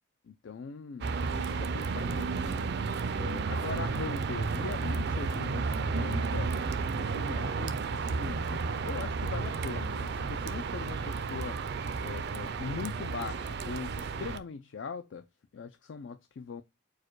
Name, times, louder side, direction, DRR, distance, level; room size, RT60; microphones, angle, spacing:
voice 1, 0.2-2.7 3.1-6.6 6.9-11.6 12.0-15.3 15.5-16.6, left 5 dB, 70° left, 0.4 m, -41 dB
sound 1, 1.0-14.4, right 4 dB, 60° right, 0.4 m, -32 dB
4.6 x 2.2 x 4.5 m
head